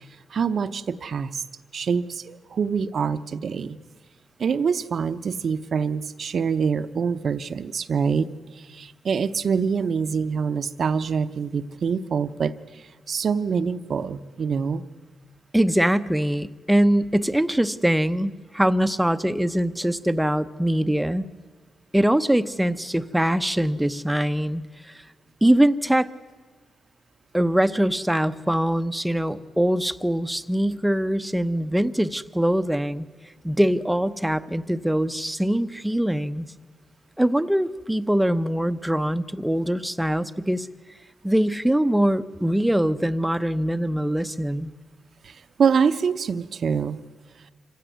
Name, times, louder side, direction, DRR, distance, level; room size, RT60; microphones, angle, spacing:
voice 1, 0.3-1.4 1.7-3.8 4.4-12.5 13.1-14.9 45.2-45.3 45.6-47.0, right 6 dB, 60° right, 11 dB, 0.8 m, -25 dB
voice 2, 15.5-21.3 21.9-24.9 25.4-26.1 27.3-33.1 33.4-36.5 37.2-40.7 41.2-44.7, right 1 dB, 5° right, 11 dB, 0.8 m, -23 dB
25.5 x 16.0 x 9.4 m, 1.4 s
cardioid pair, 90°, 0 cm